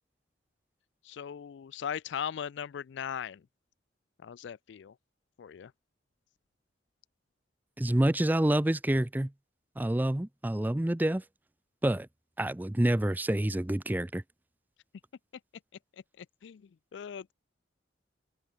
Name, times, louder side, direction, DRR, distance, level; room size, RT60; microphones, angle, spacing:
voice 1, 1.0-3.4 4.2-4.9 5.4-5.7 16.2-16.6 16.9-17.3, left 8 dB, 65° left, 0.3 m, -38 dB
voice 2, 7.8-9.3 9.8-11.2 11.8-12.1 12.4-14.2, right 1 dB, 10° right, 0.4 m, -27 dB
open air
head